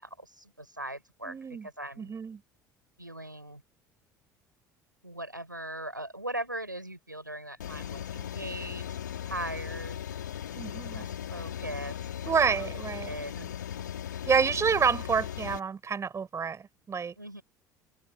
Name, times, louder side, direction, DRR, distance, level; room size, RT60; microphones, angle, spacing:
voice 1, 0.0-1.4 1.6-2.1 3.0-3.6 5.0-9.0 9.2-10.0 10.9-13.6 17.2-17.4, right 1 dB, 90° right, 7.0 m, -40 dB
voice 2, 1.2-1.7 2.0-2.4 10.5-11.1 12.3-13.1 14.3-17.1, right 6 dB, 30° right, 7.5 m, -28 dB
sound 1, 7.6-15.6, left 10 dB, 75° left, 5.2 m, -38 dB
open air
figure-of-eight pair, 60°, 10 cm